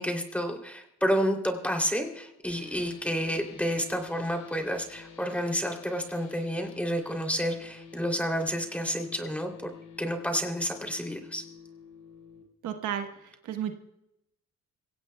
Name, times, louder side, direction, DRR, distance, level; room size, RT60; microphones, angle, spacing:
voice 1, 0.0-9.7 10.0-11.4, equal, 5° left, 3 dB, 3.0 m, -30 dB
sound 1, 2.5-12.4, left 6 dB, 85° left, 3.8 m, -49 dB
voice 2, 12.6-13.7, right 9 dB, 80° right, 6 dB, 1.3 m, -33 dB
26.5 x 17.0 x 2.3 m, 0.84 s
cardioid pair, 90°, 30 cm